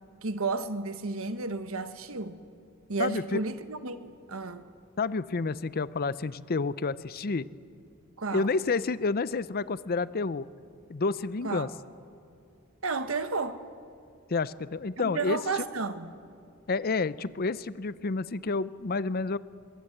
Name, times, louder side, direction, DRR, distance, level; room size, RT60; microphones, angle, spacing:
voice 1, 0.2-2.4 2.9-4.7 8.2-8.5 11.4-11.7 12.8-13.6 15.0-16.2, right 4 dB, 70° right, 1.3 m, -32 dB
voice 2, 3.0-3.4 5.0-7.5 8.3-10.5 10.9-11.7 14.3-15.4 16.7-19.4, left 4 dB, 45° left, 0.6 m, -29 dB
24.0 x 23.0 x 8.0 m
head